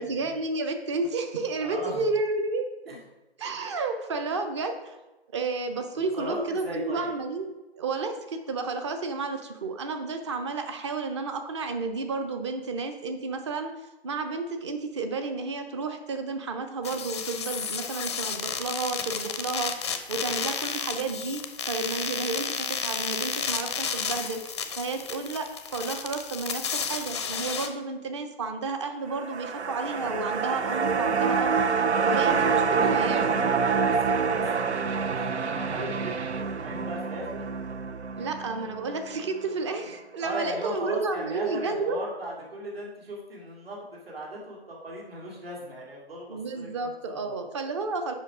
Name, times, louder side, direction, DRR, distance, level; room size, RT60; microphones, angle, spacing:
voice 1, 0.0-2.6 3.4-5.0 5.3-7.5 7.8-13.7 14.0-33.3 38.2-42.0 46.3-48.1, right 3 dB, 25° right, 7 dB, 0.7 m, -31 dB
voice 2, 1.6-2.0 2.9-3.0 6.2-7.1 20.1-20.4 32.2-37.4 40.2-46.3 46.5-47.3, right 1 dB, 65° right, -3 dB, 2.9 m, -37 dB
sound 1, 16.8-27.7, left 6 dB, 25° left, 0.5 m, -32 dB
sound 2, 29.1-39.5 39.8-39.9, right 5 dB, 90° right, 0.5 m, -27 dB
7.4 x 5.4 x 4.9 m, 1.0 s
figure-of-eight pair, 140°, 32 cm